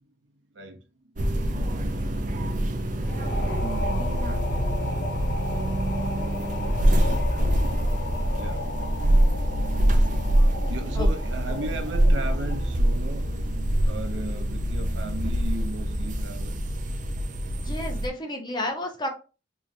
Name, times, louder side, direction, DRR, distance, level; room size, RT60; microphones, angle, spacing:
sound 1, 1.2-18.1, right 1 dB, 45° right, 0.6 m, -25 dB
sound 2, 3.0-12.8, left 2 dB, 55° left, 0.4 m, -36 dB
voice 1, 8.3-8.7 10.5-13.3 13.9-16.6 19.0-19.1, right 2 dB, 80° right, 0.8 m, -36 dB
voice 2, 17.6-19.1, left 1 dB, 25° left, 0.8 m, -31 dB
3.7 x 3.1 x 2.7 m
head